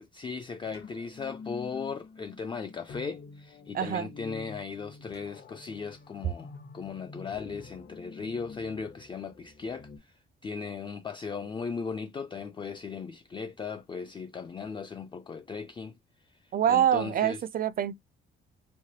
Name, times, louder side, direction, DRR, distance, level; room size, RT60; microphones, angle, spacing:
voice 1, 0.1-10.1 10.4-16.0 16.3-17.4, left 5 dB, 25° left, 0.4 m, -37 dB
sound 1, 0.6-10.0, left 4 dB, 55° left, 0.9 m, -48 dB
voice 2, 3.7-4.1 16.5-18.0, right 10 dB, 45° right, 0.4 m, -25 dB
3.2 x 2.1 x 2.8 m
cardioid pair, 90°, 20 cm